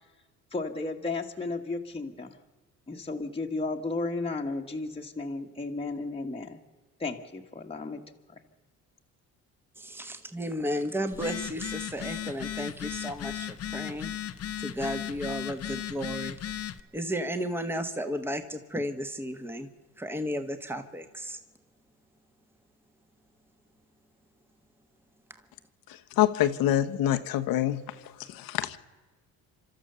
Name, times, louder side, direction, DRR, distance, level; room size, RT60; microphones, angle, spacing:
voice 1, 0.5-2.4 2.9-6.6 7.0-8.0, left 3 dB, 15° left, 1 dB, 1.5 m, -34 dB
voice 2, 9.8-14.1 14.6-16.4 16.9-19.7 20.0-21.4, equal, 5° right, 8 dB, 1.5 m, -33 dB
Telephone, 11.1-16.8, left 10 dB, 45° left, 0.9 m, -36 dB
voice 3, 26.2-27.8 28.3-28.8, left 12 dB, 80° left, 9 dB, 1.2 m, -25 dB
29.5 x 13.0 x 6.9 m, 1.3 s
cardioid pair, 100°, 35 cm